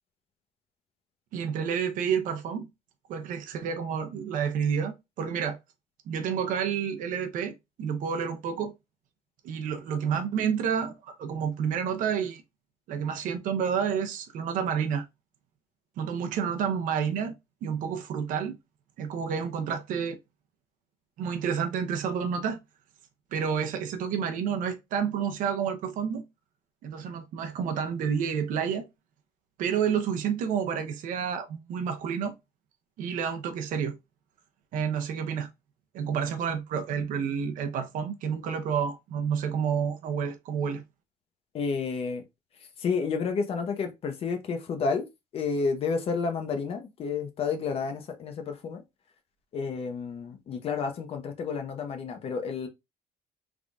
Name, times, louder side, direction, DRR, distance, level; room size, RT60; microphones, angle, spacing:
voice 1, 1.3-2.7 3.1-5.6 6.1-8.7 9.4-12.4 12.9-15.0 16.0-17.3 17.6-18.6 19.0-20.2 21.2-22.6 23.3-26.2 26.8-28.9 29.6-32.4 33.0-34.0 34.7-35.5 35.9-40.8, right 7 dB, 60° right, 0.7 m, -29 dB
voice 2, 41.5-42.2 42.8-45.1 45.3-48.8 49.5-52.7, left 5 dB, 40° left, 0.7 m, -30 dB
3.8 x 3.5 x 2.3 m
cardioid pair, 175°, 16 cm